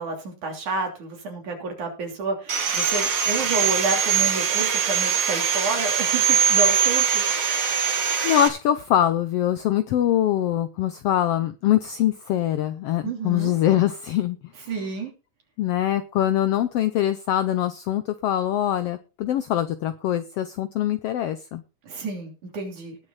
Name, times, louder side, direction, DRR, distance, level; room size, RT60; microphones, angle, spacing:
voice 1, 0.0-7.3 13.0-13.5 14.7-15.1 21.8-23.0, right 3 dB, 75° right, 2 dB, 4.6 m, -30 dB
Sawing, 2.5-8.5, right 8 dB, 50° right, 2.2 m, -22 dB
voice 2, 8.2-14.4 15.6-21.6, left 11 dB, 80° left, 12 dB, 1.4 m, -23 dB
19.0 x 6.4 x 4.0 m, 0.32 s
omnidirectional pair, 3.5 m